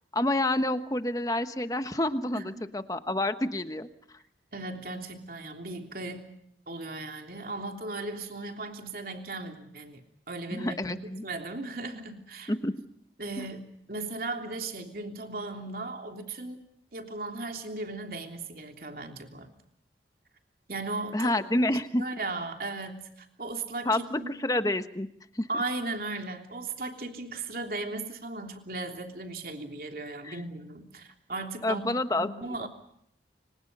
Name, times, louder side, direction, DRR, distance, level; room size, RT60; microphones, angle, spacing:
voice 1, 0.1-4.2 10.5-11.2 12.5-12.7 13.4-13.5 21.1-22.0 23.8-25.1 25.3-25.6 30.2-30.4 31.6-32.3 32.6-32.7, left 1 dB, 20° left, 9 dB, 1.2 m, -28 dB
voice 2, 4.5-6.3 6.7-10.0 10.3-12.5 13.2-16.6 16.9-19.5 20.7-21.3 22.0-24.3 25.5-32.7, right 2 dB, 50° right, 4 dB, 3.2 m, -37 dB
30.0 x 26.0 x 5.5 m, 0.72 s
head